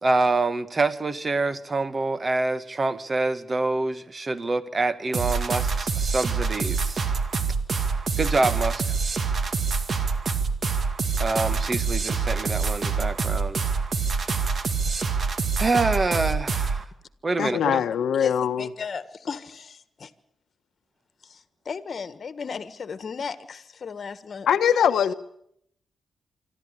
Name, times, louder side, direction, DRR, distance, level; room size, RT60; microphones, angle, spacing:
voice 1, 0.0-7.1 8.2-8.9 11.2-13.6 15.6-16.8 17.2-17.8, right 3 dB, 35° right, 13 dB, 1.5 m, -26 dB
sound 1, 5.1-16.8, right 5 dB, 50° right, 2.1 m, -26 dB
voice 2, 17.4-18.7 24.5-25.1, left 8 dB, 85° left, 10 dB, 1.0 m, -22 dB
voice 3, 18.2-20.1 21.2-24.5, left 5 dB, 55° left, 14 dB, 1.5 m, -36 dB
25.5 x 13.0 x 9.9 m, 0.73 s
cardioid pair, 90°, 0 cm